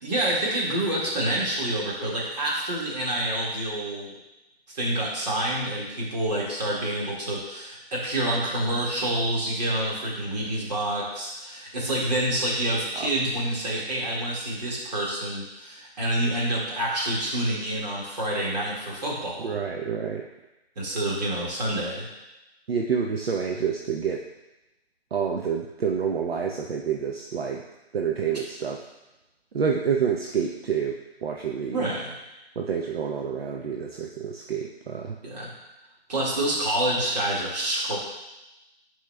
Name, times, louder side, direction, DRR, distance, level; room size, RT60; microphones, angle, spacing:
voice 1, 0.0-4.2 4.7-19.5 20.8-22.1 31.7-32.2 35.2-35.5 36.1-38.0, right 1 dB, 40° right, -4 dB, 1.9 m, -27 dB
voice 2, 19.4-20.3 22.7-24.2 25.1-27.6 27.9-28.8 29.5-31.8 32.6-35.2, right 6 dB, 65° right, 1 dB, 0.7 m, -28 dB
10.0 x 4.7 x 2.2 m, 0.97 s
hypercardioid pair, 160°, 32 cm